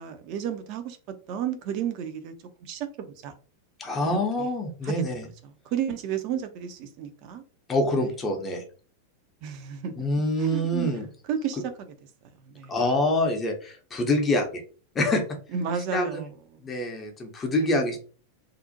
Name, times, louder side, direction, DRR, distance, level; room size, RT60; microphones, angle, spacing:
voice 1, 0.0-2.3 2.6-3.3 4.0-4.5 4.8-5.0 5.7-7.4 8.0-8.1 9.4-10.1 10.4-10.9 11.3-11.9 12.5-12.7 15.5-16.8 17.5-17.8, right 8 dB, 45° right, 0.4 m, -33 dB
voice 2, 3.8-5.2 7.7-8.6 10.0-11.1 12.7-14.6 14.9-15.2 15.9-16.2 16.6-18.0, left 1 dB, 20° left, 0.5 m, -26 dB
2.4 x 2.0 x 2.7 m
figure-of-eight pair, 90°, 0 cm